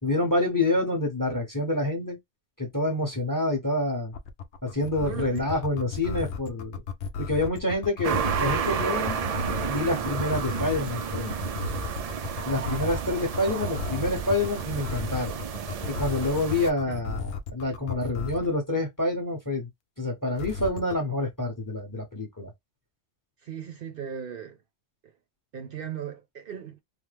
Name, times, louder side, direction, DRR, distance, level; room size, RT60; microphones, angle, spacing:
voice 1, 0.0-2.2 2.6-4.1 4.6-6.8 7.2-9.2 9.7-11.6 12.5-15.4 16.0-19.7 20.0-22.5, left 2 dB, 20° left, 0.9 m, -27 dB
sound 1, 4.1-18.5 20.4-20.9, left 5 dB, 75° left, 0.9 m, -34 dB
voice 2, 5.0-5.4 16.9-17.0 23.4-24.6 25.5-26.8, right 8 dB, 60° right, 0.8 m, -37 dB
sound 2, 8.0-16.7, right 7 dB, 75° right, 0.3 m, -31 dB
3.1 x 2.0 x 3.2 m
omnidirectional pair, 1.2 m